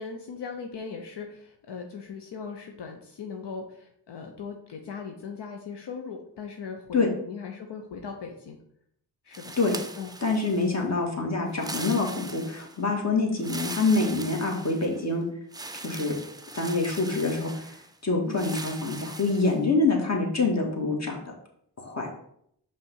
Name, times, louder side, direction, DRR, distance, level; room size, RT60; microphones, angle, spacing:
voice 1, 0.0-7.0 7.3-8.6 9.2-9.5 10.0-10.1 18.3-18.5, left 5 dB, 80° left, 3 dB, 0.8 m, -39 dB
sound 1, 9.3-10.8 11.5-12.8 13.4-15.0 15.5-17.9 18.3-19.6, right 2 dB, 10° right, 0.5 m, -40 dB
voice 2, 10.2-15.3 15.8-16.1 16.5-17.8 18.0-21.3 21.8-22.1, left 3 dB, 40° left, 0 dB, 1.8 m, -26 dB
5.5 x 3.4 x 5.4 m, 0.70 s
cardioid pair, 60°, 41 cm